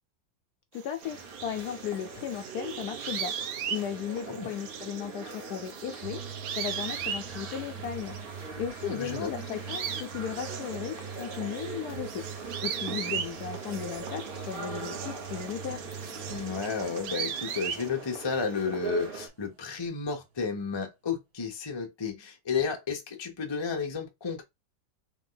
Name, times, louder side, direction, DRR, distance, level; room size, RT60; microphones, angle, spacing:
voice 1, 0.7-3.3 3.7-6.2 6.5-8.2 8.6-12.2 12.6-15.8, left 9 dB, 75° left, 0.9 m, -36 dB
sound 1, 0.7-8.5 8.7-17.9, right 8 dB, 90° right, 1.4 m, -39 dB
sound 2, 1.0-19.3, right 4 dB, 40° right, 0.9 m, -42 dB
sound 3, 6.0-19.7 20.2-20.3, right 6 dB, 55° right, 1.3 m, -44 dB
voice 2, 8.8-9.3 16.3-24.4, left 5 dB, 40° left, 0.3 m, -32 dB
3.6 x 3.2 x 3.8 m
omnidirectional pair, 2.1 m